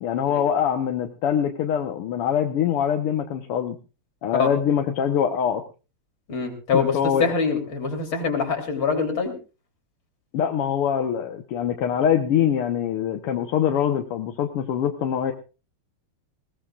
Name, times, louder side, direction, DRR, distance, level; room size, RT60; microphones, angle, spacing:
voice 1, 0.0-3.8 4.2-5.6 6.7-7.3 10.3-15.3, left 8 dB, 85° left, 5 dB, 2.1 m, -23 dB
voice 2, 6.3-9.4, left 5 dB, 65° left, 2 dB, 4.3 m, -24 dB
21.5 x 17.0 x 2.4 m, 0.32 s
omnidirectional pair, 2.4 m